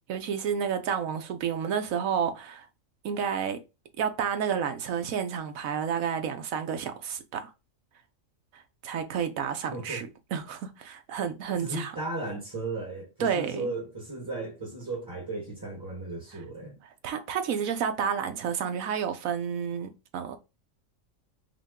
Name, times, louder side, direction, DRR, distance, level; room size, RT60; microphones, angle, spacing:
voice 1, 0.1-2.7 3.0-3.6 4.0-7.5 8.5-11.9 13.2-13.7 17.0-20.4, right 7 dB, 80° right, 1.2 m, -30 dB
voice 2, 9.7-10.0 11.6-16.8, right 2 dB, 20° right, 1.1 m, -35 dB
5.5 x 2.2 x 3.6 m
omnidirectional pair, 1.4 m